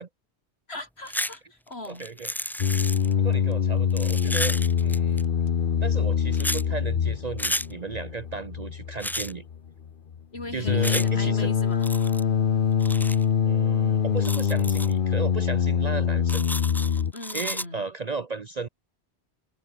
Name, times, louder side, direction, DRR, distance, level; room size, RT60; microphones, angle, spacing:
voice 1, 0.7-2.1 10.3-11.9 17.1-17.9, left 2 dB, 70° left, 4.9 m, -39 dB
sound 1, 1.1-1.4 1.7-3.1 3.9-5.2 6.3-6.6 7.4-7.7 9.0-9.3 10.8-11.1 11.8-12.2 12.8-13.2 14.2-14.9 16.3-17.6, equal, 5° left, 0.3 m, -32 dB
voice 2, 1.9-2.3 3.2-5.2 5.8-9.5 10.5-11.5 13.4-16.5 17.3-18.7, right 4 dB, 40° right, 0.9 m, -34 dB
sound 2, 2.6-17.1, left 7 dB, 55° left, 1.0 m, -24 dB
omnidirectional pair, 1.1 m